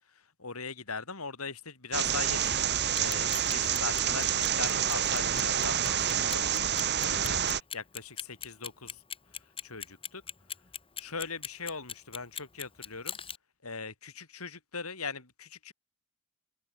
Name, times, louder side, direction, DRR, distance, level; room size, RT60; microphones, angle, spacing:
voice 1, 0.4-2.7 2.9-6.7 7.0-7.4 7.7-9.0 9.6-10.2 11.0-13.2 13.6-15.7, left 4 dB, 75° left, 4.7 m, -40 dB
sound 1, 1.9-7.6, right 9 dB, 50° right, 2.8 m, -28 dB
Clock, 2.9-13.4, left 7 dB, 25° left, 1.7 m, -40 dB
open air
head